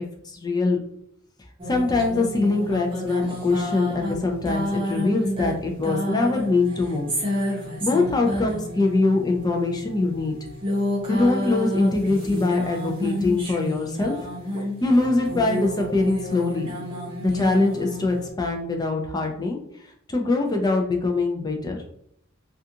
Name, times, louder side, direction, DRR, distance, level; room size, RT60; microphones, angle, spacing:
voice 1, 0.3-0.8 1.7-7.1 7.8-10.3 11.1-14.1 14.8-16.7 17.2-19.6 20.1-21.8, left 3 dB, 20° left, 2 dB, 0.4 m, -23 dB
sound 1, 1.6-18.3, equal, 25° right, 0.8 m, -30 dB
2.4 x 2.3 x 2.7 m, 0.69 s
head